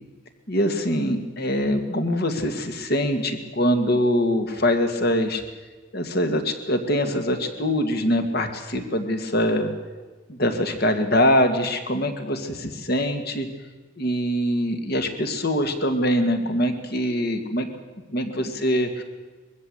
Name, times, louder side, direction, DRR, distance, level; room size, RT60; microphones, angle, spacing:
voice 1, 0.5-5.4 5.9-9.7 10.3-13.5 14.0-17.7 18.1-19.0, equal, 55° left, 7 dB, 2.1 m, -23 dB
22.0 x 15.0 x 8.2 m, 1.3 s
head